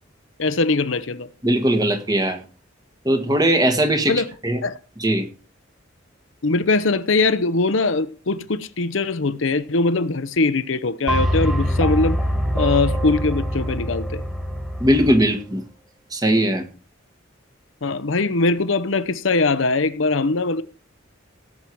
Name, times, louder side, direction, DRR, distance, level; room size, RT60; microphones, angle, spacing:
voice 1, 0.4-1.3 4.1-4.3 4.6-4.8 6.4-12.2 12.5-14.2 17.8-20.6, left 3 dB, 80° left, 0.9 m, -21 dB
voice 2, 1.4-2.4 3.0-4.1 4.4-4.6 5.0-5.2 14.8-15.6 16.1-16.6, right 1 dB, 20° right, 1.6 m, -19 dB
sound 1, 11.1-15.3, equal, ahead, 2.0 m, -23 dB
17.0 x 7.4 x 4.7 m
head